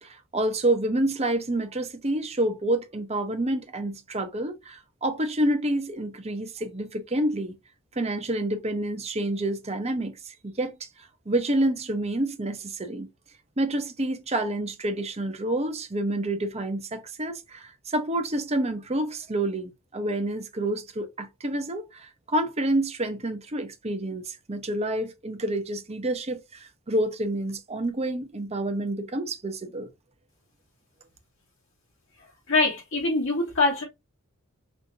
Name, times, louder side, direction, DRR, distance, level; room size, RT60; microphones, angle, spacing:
voice 1, 0.0-7.6 7.9-10.9 11.3-13.1 13.6-29.9, right 1 dB, 30° right, 0.9 m, -28 dB
voice 2, 32.5-33.8, left 3 dB, 70° left, 2.7 m, -23 dB
5.3 x 3.0 x 2.7 m
head